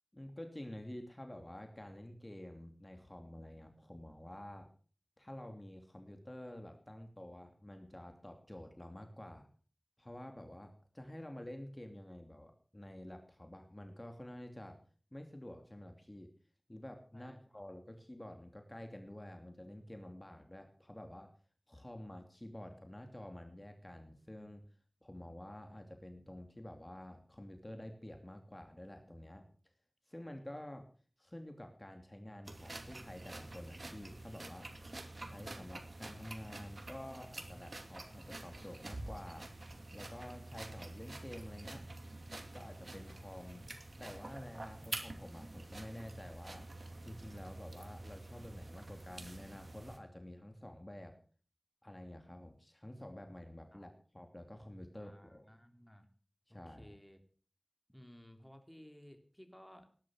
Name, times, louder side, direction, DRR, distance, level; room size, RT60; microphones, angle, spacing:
voice 1, 0.1-4.7 5.2-9.5 10.0-14.8 15.1-16.3 16.7-21.3 21.7-24.6 25.0-29.4 30.1-30.9 31.2-34.8 35.1-39.5 39.9-41.8 42.5-43.7 44.0-46.7 47.0-51.2 51.8-55.4 56.5-56.9, left 1 dB, 30° left, 5 dB, 2.7 m, -49 dB
voice 2, 17.1-17.6 53.7-53.9 54.9-56.1 56.5-57.2 57.9-59.9, equal, 10° left, 6 dB, 3.2 m, -57 dB
sound 1, 32.4-50.0, right 2 dB, 80° right, 2.5 m, -48 dB
19.5 x 11.5 x 6.4 m, 0.43 s
wide cardioid pair, 45°, 0 cm